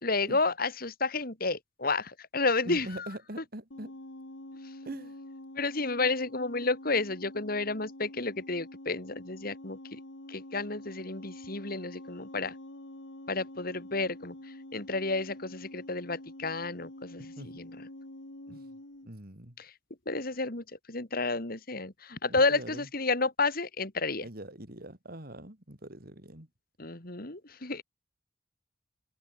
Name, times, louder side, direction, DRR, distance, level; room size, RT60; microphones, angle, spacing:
voice 1, 0.0-3.1 5.6-10.0 10.3-12.5 13.3-14.3 14.7-17.2 17.6-17.7 19.6-19.7 20.1-24.2 26.8-27.8, left 3 dB, 50° left, 3.0 m, -31 dB
voice 2, 2.6-4.0 4.8-5.2 17.2-17.6 18.5-18.7 19.0-19.6 22.3-22.9 24.2-26.5, right 1 dB, 50° right, 4.7 m, -43 dB
sound 1, 3.7-19.1, left 1 dB, 80° left, 2.8 m, -47 dB
head